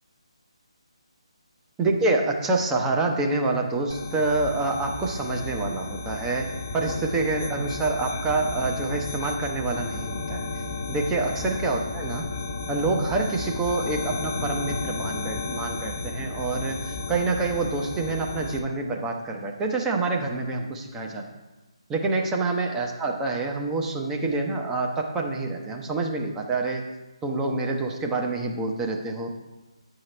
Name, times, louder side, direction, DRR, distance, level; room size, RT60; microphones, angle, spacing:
voice 1, 1.8-10.4 10.9-12.3 12.7-21.2 21.9-26.8 27.2-29.3, right 3 dB, 10° right, 1 dB, 0.7 m, -27 dB
sound 1, 3.9-18.6, left 3 dB, 30° left, 0.6 m, -33 dB
9.5 x 4.7 x 4.4 m, 1.1 s
figure-of-eight pair, 150°, 3 cm